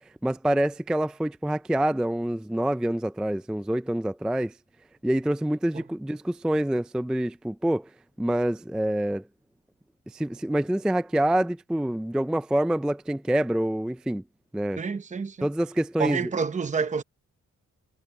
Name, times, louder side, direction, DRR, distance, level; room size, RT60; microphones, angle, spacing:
voice 1, 0.2-4.5 5.0-7.9 8.2-9.2 10.1-14.2 14.5-14.8 15.4-16.3, right 1 dB, 5° right, 0.3 m, -26 dB
voice 2, 14.8-15.5 16.0-17.0, right 5 dB, 25° right, 0.8 m, -28 dB
wide cardioid pair, 145°, 32 cm